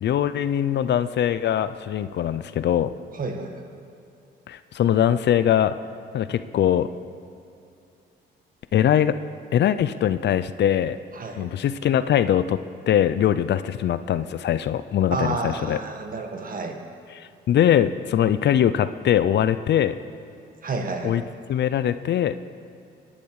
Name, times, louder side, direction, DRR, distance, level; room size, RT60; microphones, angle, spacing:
voice 1, 0.0-2.9 4.5-5.7 6.1-6.9 8.7-9.1 9.5-11.0 11.4-12.6 12.9-15.8 17.2-20.0 21.0-21.2 21.5-22.3, left 10 dB, 60° left, 13 dB, 0.6 m, -22 dB
voice 2, 3.1-3.7 11.1-11.5 15.1-16.8 20.6-21.3, right 3 dB, 45° right, 4 dB, 1.8 m, -30 dB
22.0 x 10.5 x 4.9 m, 2.7 s
cardioid pair, 90°, 20 cm